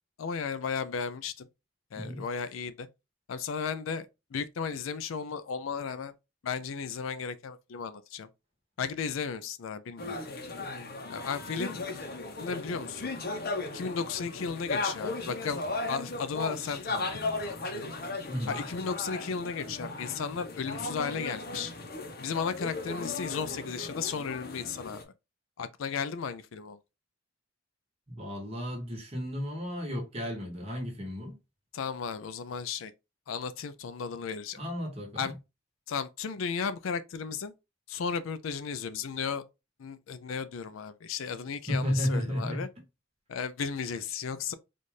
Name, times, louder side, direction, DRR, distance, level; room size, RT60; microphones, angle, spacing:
voice 1, 0.2-1.5 1.9-2.9 3.3-6.1 6.4-8.3 8.8-10.2 11.1-11.8 12.4-13.1 13.7-17.9 18.5-21.7 22.2-25.0 25.6-26.8 31.7-32.9 33.3-34.6 35.2-35.3 35.9-37.5 37.9-39.4 39.8-42.7 43.3-44.5, left 6 dB, 75° left, 0.4 m, -35 dB
sound 1, 10.0-25.0, left 2 dB, 45° left, 0.8 m, -36 dB
voice 2, 18.3-18.6 28.1-31.4 34.6-35.3 41.7-42.6, equal, 30° right, 1.2 m, -33 dB
4.2 x 2.5 x 3.2 m
head